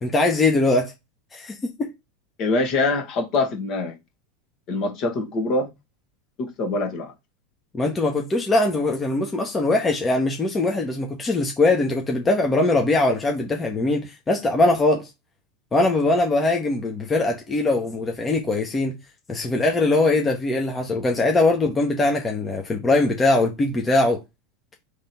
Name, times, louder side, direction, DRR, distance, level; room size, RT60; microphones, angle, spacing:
voice 1, 0.0-0.9 1.3-1.9 7.7-15.1 15.7-19.0 19.3-24.2, left 2 dB, 20° left, 1.1 m, -21 dB
voice 2, 2.4-3.9 4.7-5.7 6.4-7.1, left 2 dB, 45° left, 1.6 m, -24 dB
3.5 x 3.3 x 4.3 m
hypercardioid pair, 90°, 0 cm